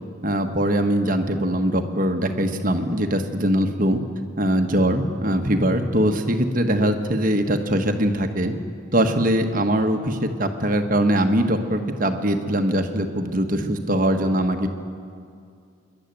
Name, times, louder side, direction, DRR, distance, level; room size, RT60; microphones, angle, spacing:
voice 1, 0.2-4.0 4.4-8.5 8.9-14.7, right 1 dB, 40° right, 5 dB, 1.3 m, -22 dB
26.0 x 11.5 x 9.1 m, 2.4 s
head